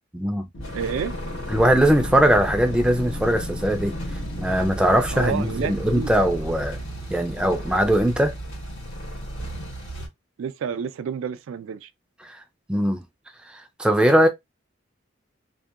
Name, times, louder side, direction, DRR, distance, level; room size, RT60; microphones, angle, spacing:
voice 1, 0.1-0.5 1.5-4.0 4.4-6.8 7.1-8.4 12.2-12.4 12.7-13.0 13.4-14.3, right 1 dB, 5° right, 0.3 m, -20 dB
Wind, 0.5-7.5, left 1 dB, 65° left, 0.6 m, -36 dB
sound 1, 0.6-10.1, equal, 80° left, 1.3 m, -35 dB
voice 2, 0.7-1.1 5.1-6.1 10.4-11.9, right 7 dB, 90° right, 0.3 m, -29 dB
2.7 x 2.1 x 2.3 m
head